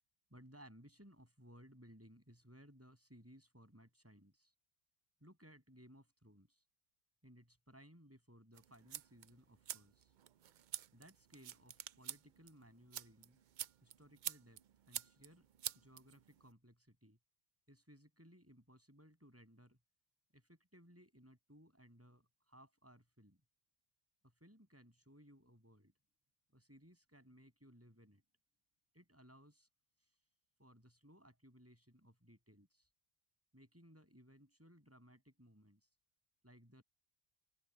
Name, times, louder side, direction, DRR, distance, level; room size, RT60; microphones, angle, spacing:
voice 1, 0.3-4.5 5.2-6.6 7.2-10.1 10.9-13.4 13.8-15.5 15.7-17.2 17.7-19.8 20.3-23.4 24.2-25.9 26.5-28.2 28.9-29.7 30.0-30.1 30.6-32.9 33.5-35.9 36.4-36.8, equal, 10° right, 8.0 m, -62 dB
sound 1, 8.5-16.5, right 10 dB, 55° right, 0.6 m, -49 dB
open air
omnidirectional pair, 1.1 m